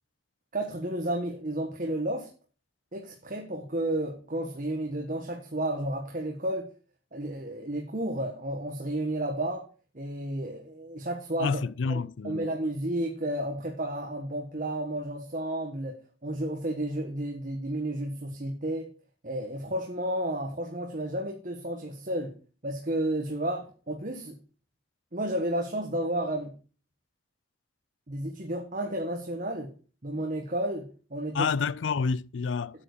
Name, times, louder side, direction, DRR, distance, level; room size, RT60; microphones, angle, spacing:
voice 1, 0.5-2.3 2.9-6.7 7.1-9.7 9.9-11.6 11.9-16.0 16.2-18.9 19.2-22.3 22.6-24.4 25.1-26.6 28.1-29.7 30.0-31.5, right 1 dB, 45° right, 1.4 m, -32 dB
voice 2, 11.4-12.5 31.3-32.8, left 5 dB, 80° left, 0.5 m, -29 dB
8.7 x 7.2 x 6.7 m
head